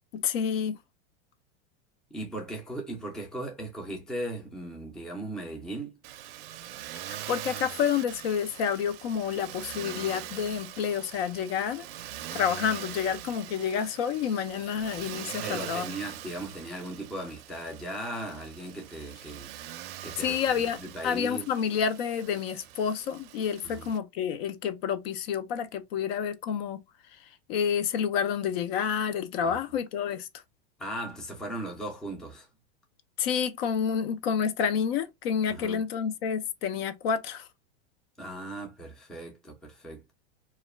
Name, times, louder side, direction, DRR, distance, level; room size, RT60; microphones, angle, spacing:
voice 1, 0.1-0.8 7.1-11.9 12.3-15.9 20.2-26.8 27.5-30.3 33.2-37.5, left 7 dB, 60° left, 0.5 m, -29 dB
voice 2, 2.1-5.9 15.4-19.5 20.0-21.5 23.6-23.9 29.4-29.6 30.8-32.5 35.5-35.8 38.2-40.1, right 1 dB, ahead, 0.4 m, -38 dB
Motor vehicle (road), 6.0-24.0, right 12 dB, 60° right, 0.5 m, -42 dB
2.4 x 2.1 x 3.0 m
supercardioid pair, 135°, 34 cm